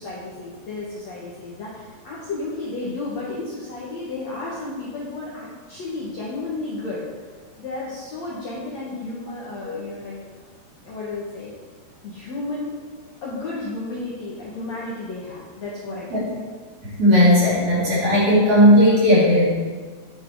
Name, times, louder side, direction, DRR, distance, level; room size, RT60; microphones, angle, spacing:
voice 1, 0.0-7.1 7.6-10.2 10.8-11.5 12.0-12.8 13.2-16.3, left 2 dB, 55° left, -6 dB, 2.1 m, -32 dB
voice 2, 16.8-19.5, equal, 35° right, -7 dB, 3.9 m, -16 dB
11.0 x 8.6 x 4.8 m, 1.5 s
omnidirectional pair, 5.0 m